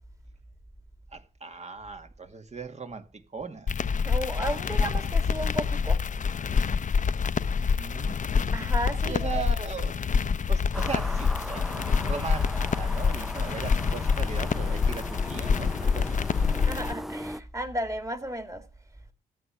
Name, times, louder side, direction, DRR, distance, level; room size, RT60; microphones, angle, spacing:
voice 1, 1.1-3.8 7.6-8.2 9.0-9.9 10.5-16.5, right 5 dB, 40° right, 2.0 m, -38 dB
sound 1, 3.7-16.9, left 5 dB, 45° left, 0.7 m, -26 dB
voice 2, 4.0-6.0 8.5-9.2 16.6-18.6, right 1 dB, 15° right, 2.6 m, -33 dB
sound 2, 10.7-17.4, equal, ahead, 0.5 m, -38 dB
14.0 x 8.7 x 5.9 m
hypercardioid pair, 40°, 18 cm